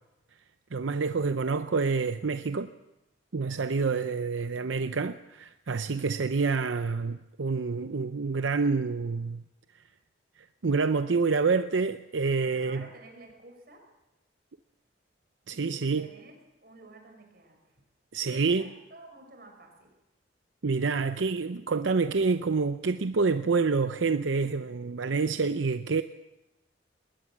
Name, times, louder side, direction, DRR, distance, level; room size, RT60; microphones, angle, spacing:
voice 1, 0.7-2.7 3.3-9.4 10.4-12.9 15.5-16.1 18.1-18.7 20.6-26.0, right 4 dB, 90° right, 0.6 m, -27 dB
voice 2, 4.5-5.2 12.4-13.8 15.5-17.8 18.2-19.9, right 2 dB, 55° right, 5.6 m, -52 dB
20.5 x 19.0 x 7.3 m
head